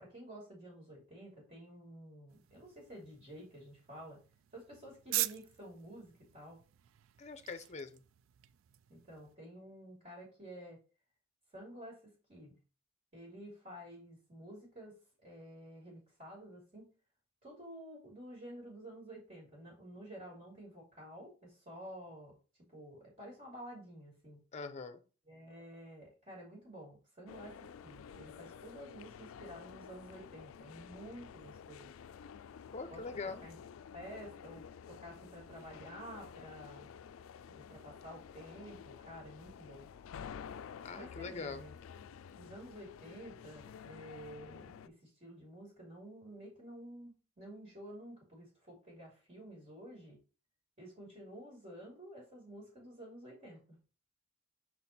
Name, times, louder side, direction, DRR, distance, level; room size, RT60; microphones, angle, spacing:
voice 1, 0.0-4.2 4.5-6.6 8.9-10.8 11.5-12.6 13.1-14.9 15.2-16.9 17.4-22.3 22.7-24.4 25.3-31.9 32.9-33.0 33.4-33.6 33.9-36.9 37.5-39.9 40.9-41.7 42.4-50.2 50.8-53.8, equal, 35° right, 2.7 m, -51 dB
sound 1, 2.3-9.4, right 15 dB, 75° right, 0.3 m, -44 dB
voice 2, 7.2-8.0 24.5-25.0 32.7-33.5 40.8-41.6, left 4 dB, 35° left, 0.6 m, -43 dB
sound 2, 27.3-44.9, left 7 dB, 80° left, 0.3 m, -51 dB
6.0 x 4.2 x 4.2 m
head